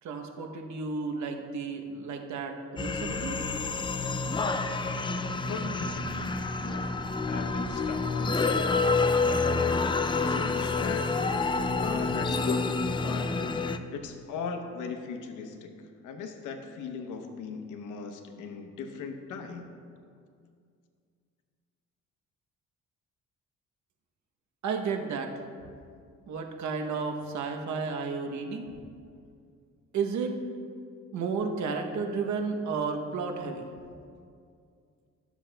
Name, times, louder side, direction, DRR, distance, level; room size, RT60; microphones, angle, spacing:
voice 1, 0.0-3.4 24.6-25.4 26.3-28.7 29.9-30.3 31.1-33.7, right 5 dB, 70° right, 4 dB, 0.9 m, -32 dB
sound 1, 2.8-13.8, left 3 dB, 15° left, 0.3 m, -28 dB
voice 2, 5.5-7.0 7.2-9.0 10.2-11.1 11.8-12.8 13.0-13.4 13.9-15.7 16.0-19.7, left 5 dB, 85° left, 6 dB, 0.8 m, -38 dB
12.5 x 7.0 x 2.2 m, 2.3 s
cardioid pair, 90°, 30 cm